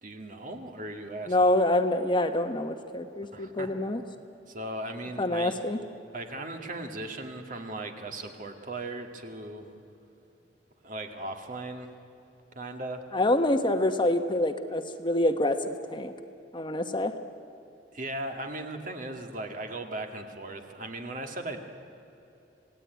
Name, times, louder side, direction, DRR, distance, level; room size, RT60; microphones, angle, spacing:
voice 1, 0.0-1.4 3.3-3.7 4.5-5.6 6.1-9.7 10.8-11.9 12.6-13.0 17.9-21.6, right 2 dB, 50° right, 4 dB, 2.2 m, -37 dB
voice 2, 1.3-4.0 5.2-5.8 13.1-16.1 16.5-17.1, left 1 dB, 25° left, 7 dB, 1.2 m, -26 dB
27.5 x 17.5 x 9.4 m, 2.8 s
head